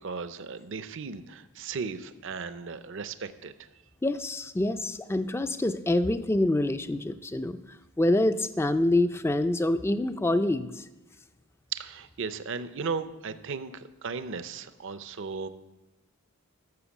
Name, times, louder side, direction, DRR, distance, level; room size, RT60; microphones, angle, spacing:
voice 1, 0.0-3.5 11.7-15.5, right 5 dB, 55° right, 12 dB, 0.6 m, -36 dB
voice 2, 4.0-7.6 8.0-10.8, left 1 dB, 10° left, 11 dB, 0.4 m, -26 dB
12.5 x 6.6 x 7.1 m, 1.1 s
head